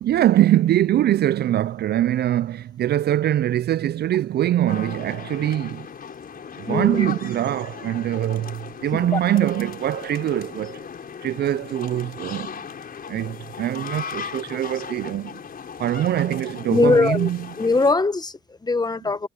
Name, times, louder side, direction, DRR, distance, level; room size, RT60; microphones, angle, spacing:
voice 1, 0.0-5.9 6.6-10.9 11.2-12.6 13.1-15.4 15.8-17.4, right 12 dB, 55° right, 0.4 m, -23 dB
sound 1, 4.7-17.9, left 6 dB, 50° left, 5.4 m, -37 dB
voice 2, 6.7-7.1 8.9-9.2 16.7-17.3 17.6-19.3, left 3 dB, 20° left, 1.2 m, -21 dB
cardioid pair, 90°, 20 cm